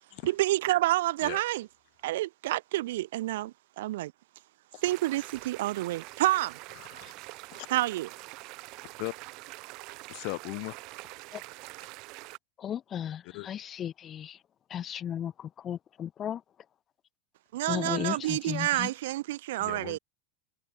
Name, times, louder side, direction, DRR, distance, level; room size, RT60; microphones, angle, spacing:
voice 1, 0.2-1.7 2.0-4.1 4.8-6.6 7.7-8.1 17.5-20.0, right 16 dB, 75° right, 0.5 m, -29 dB
sound 1, 4.8-12.4, right 25 dB, 45° right, 1.5 m, -45 dB
voice 2, 6.8-7.1 7.5-7.7 9.0-9.1 10.1-10.7 13.3-13.5 19.6-20.0, left 40 dB or more, 50° left, 1.1 m, -38 dB
voice 3, 12.6-14.4 14.7-16.4 17.7-18.9, left 9 dB, 25° left, 0.5 m, -35 dB
supercardioid pair, 165°, 0 cm